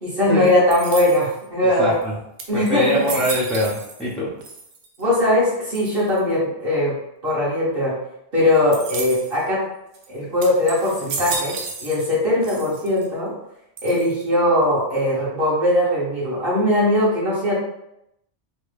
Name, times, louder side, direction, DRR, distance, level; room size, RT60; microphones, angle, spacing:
voice 1, 0.0-1.9 2.5-2.9 5.0-6.9 7.2-7.9 8.3-9.6 10.1-11.6 11.8-13.3 13.8-17.5, left 1 dB, 50° right, -8 dB, 1.5 m, -20 dB
sound 1, 0.7-1.4 2.0-2.1 2.4-4.1 4.4-5.0 5.7-6.2 8.7-9.4 9.9-10.1 10.4-12.2 12.4-13.1 13.8-14.3, right 4 dB, 80° right, 0.9 m, -33 dB
voice 2, 1.8-2.1 2.5-4.3, equal, ahead, -8 dB, 0.4 m, -23 dB
3.3 x 2.3 x 3.3 m, 0.81 s
omnidirectional pair, 1.2 m